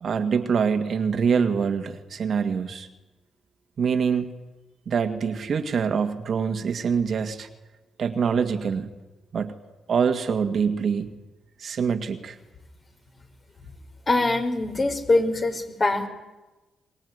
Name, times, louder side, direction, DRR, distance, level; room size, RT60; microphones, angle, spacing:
voice 1, 0.0-2.9 3.8-4.3 4.9-7.5 8.0-8.9 9.3-9.5 9.9-11.1 11.6-12.4, right 6 dB, 60° right, 7 dB, 2.0 m, -25 dB
voice 2, 14.1-16.1, left 2 dB, 35° left, 5 dB, 4.7 m, -23 dB
23.5 x 20.5 x 9.7 m, 1.1 s
cardioid pair, 70°, 0 cm